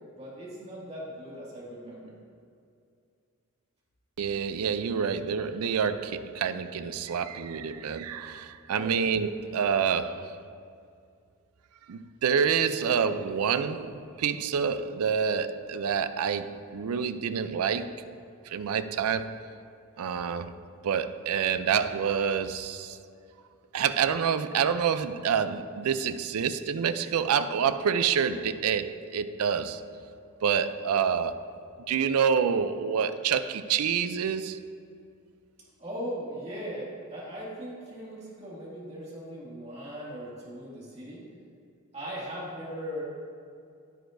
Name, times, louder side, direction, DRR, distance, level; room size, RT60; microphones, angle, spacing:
voice 1, 0.1-2.2 8.7-9.0 35.8-41.3 41.9-43.0, equal, 30° right, 2.2 m, -39 dB
voice 2, 4.2-10.4 11.9-18.0 18.5-19.5 20.0-20.5 20.8-23.0 23.7-29.8 30.4-31.4 31.9-34.6, right 7 dB, 80° right, 0.4 m, -27 dB
10.5 x 9.3 x 2.6 m
head